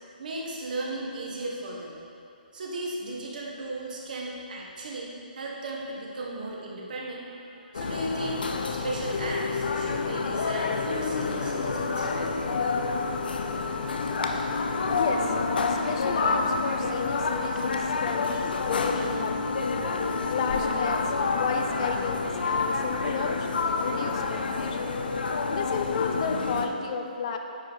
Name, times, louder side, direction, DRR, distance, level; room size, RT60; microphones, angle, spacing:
voice 1, 0.2-2.0 2.5-12.2, right 2 dB, 60° right, -2 dB, 1.6 m, -36 dB
sound 1, 7.7-26.7, left 4 dB, 80° left, 0.7 m, -28 dB
voice 2, 14.9-19.7 20.3-21.0 21.3-23.5 23.8-24.9 25.5-27.4, left 5 dB, 40° left, 5 dB, 0.6 m, -32 dB
9.4 x 5.1 x 4.1 m, 2.6 s
hypercardioid pair, 155°, 5 cm